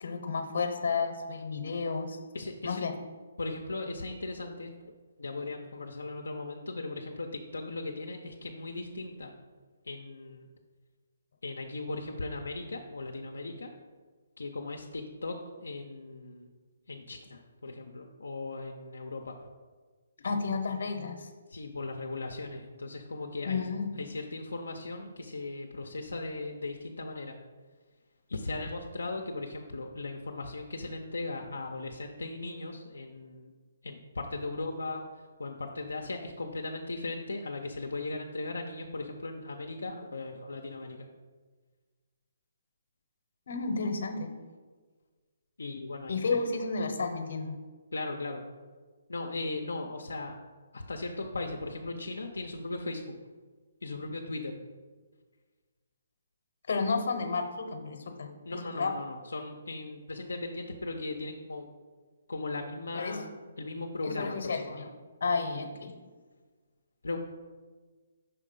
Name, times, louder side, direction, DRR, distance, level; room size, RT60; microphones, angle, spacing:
voice 1, 0.0-2.2 2.6-2.9 20.2-21.3 23.4-23.9 43.5-44.3 46.1-47.6 56.7-58.3 58.8-58.9 62.9-63.2 64.0-64.9 65.2-65.9, left 4 dB, 65° left, 6 dB, 0.8 m, -31 dB
voice 2, 2.3-2.9 3.4-4.9 5.2-9.3 9.8-10.5 11.4-13.7 14.4-16.5 16.9-19.4 21.5-23.6 24.0-27.4 28.3-33.5 33.8-41.1 45.6-46.4 47.9-48.4 49.1-50.3 50.7-53.0 53.8-54.6 58.4-61.7 62.3-63.3 63.6-64.9 67.0-67.2, left 2 dB, 85° left, 2 dB, 0.5 m, -38 dB
5.6 x 3.2 x 5.2 m, 1.4 s
hypercardioid pair, 150°, 0 cm